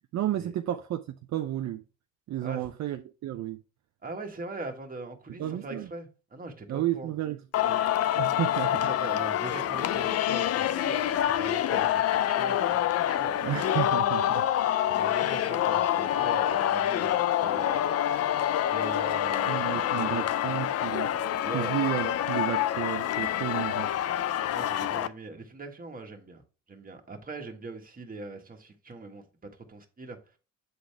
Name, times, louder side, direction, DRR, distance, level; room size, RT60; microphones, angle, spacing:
voice 1, 0.1-1.0 1.3-1.8 2.3-3.6 5.4-5.9 6.7-7.4 7.6-7.8 8.2-8.9 13.4-14.5 15.0-15.3 19.5-21.1 21.5-23.9, right 13 dB, 60° right, 0.5 m, -32 dB
voice 2, 4.0-7.1 8.8-13.4 15.0-17.9 18.7-20.5 21.4-21.7 24.5-26.4 26.7-30.2, right 2 dB, 30° right, 1.5 m, -41 dB
Singing, 7.5-25.1, left 11 dB, 55° left, 0.5 m, -27 dB
7.8 x 4.1 x 3.4 m
cardioid pair, 90°, 30 cm